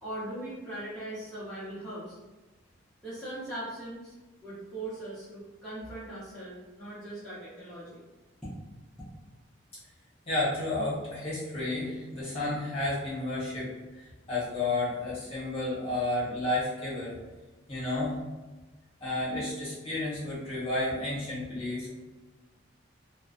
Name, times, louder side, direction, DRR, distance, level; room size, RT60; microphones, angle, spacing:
voice 1, 0.0-2.2 3.0-4.1 4.4-8.0, right 1 dB, ahead, -13 dB, 0.6 m, -40 dB
voice 2, 10.3-13.7 14.3-17.1 17.7-18.1 19.0-21.9, left 2 dB, 30° left, -9 dB, 1.0 m, -31 dB
2.6 x 2.1 x 2.4 m, 1.2 s
head